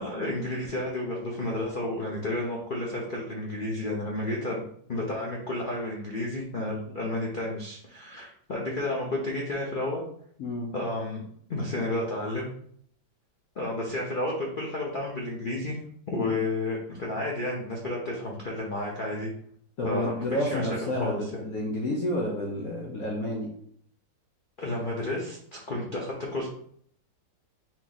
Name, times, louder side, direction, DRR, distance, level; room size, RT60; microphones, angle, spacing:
voice 1, 0.0-4.6 4.9-10.0 10.7-11.2 11.5-12.5 13.6-15.8 16.1-19.3 19.8-21.4 24.6-26.5, left 1 dB, 80° left, -2 dB, 0.4 m, -31 dB
voice 2, 19.8-23.5, left 1 dB, 60° left, -1 dB, 1.0 m, -30 dB
4.5 x 2.9 x 4.0 m, 0.63 s
omnidirectional pair, 2.1 m